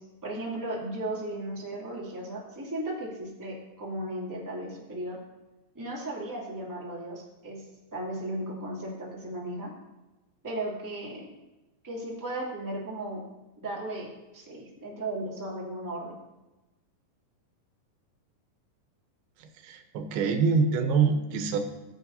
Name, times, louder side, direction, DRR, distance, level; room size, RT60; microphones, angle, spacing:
voice 1, 0.0-5.2 5.7-7.6 7.9-9.7 10.4-11.3 11.8-13.2 13.6-16.1, right 1 dB, 5° right, -5 dB, 2.1 m, -36 dB
voice 2, 19.7-21.6, right 5 dB, 90° right, 6 dB, 2.9 m, -25 dB
20.0 x 8.2 x 2.8 m, 1.0 s
omnidirectional pair, 4.2 m